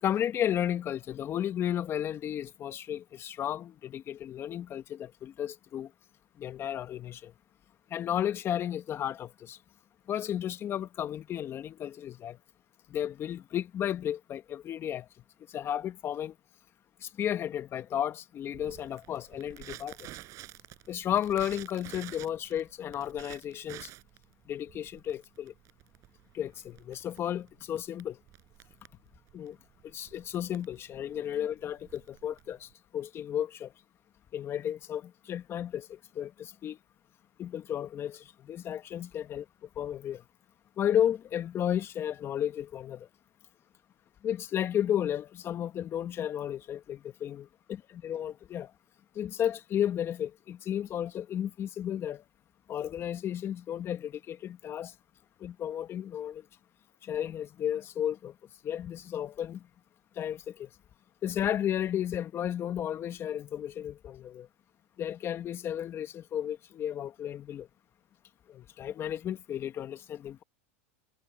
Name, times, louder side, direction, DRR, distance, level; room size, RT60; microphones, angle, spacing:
voice 1, 0.0-5.9 6.4-7.3 7.9-9.6 10.1-12.4 12.9-15.1 15.5-16.3 17.0-20.1 20.9-23.9 24.5-25.5 26.3-28.2 29.3-29.6 29.8-33.7 34.3-36.8 37.4-40.2 40.8-43.1 44.2-48.7 49.1-52.2 52.7-54.9 55.4-56.4 57.0-58.3 58.6-59.7 60.1-60.7 61.2-64.5 65.0-67.7 68.5-70.4, left 10 dB, 35° left, 1.7 m, -33 dB
Crackle, 18.5-32.7, right 16 dB, 50° right, 5.1 m, -50 dB
supercardioid pair, 110°, 7 cm